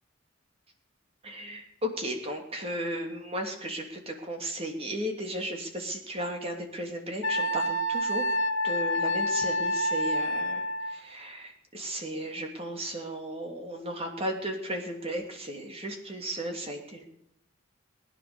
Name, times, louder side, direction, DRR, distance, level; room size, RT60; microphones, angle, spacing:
voice 1, 1.2-8.2 8.6-17.0, right 1 dB, 30° right, 3 dB, 2.8 m, -35 dB
Wind instrument woodwind instrument, 7.2-11.0, equal, 85° left, 1.3 m, -28 dB
20.5 x 10.0 x 6.8 m, 0.74 s
head